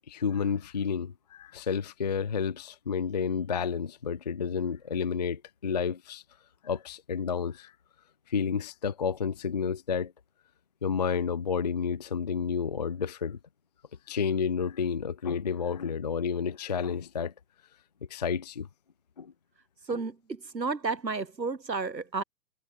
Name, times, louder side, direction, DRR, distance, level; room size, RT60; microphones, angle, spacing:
voice 1, 0.1-6.2 6.6-7.7 8.3-10.1 10.8-13.4 14.1-17.3 18.1-18.7 19.2-19.3, left 6 dB, 30° left, 0.4 m, -30 dB
voice 2, 19.9-22.2, right 4 dB, 85° right, 2.7 m, -32 dB
figure-of-eight pair, 125°, 50 cm